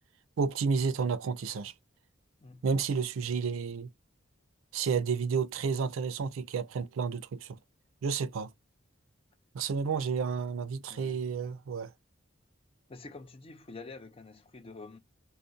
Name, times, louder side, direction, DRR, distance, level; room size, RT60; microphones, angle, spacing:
voice 1, 0.4-1.7 2.6-3.9 4.7-7.6 8.0-8.5 9.5-11.9, right 5 dB, 85° right, 0.4 m, -31 dB
voice 2, 10.9-11.2 12.9-15.0, left 3 dB, 30° left, 0.5 m, -47 dB
2.3 x 2.0 x 2.6 m
head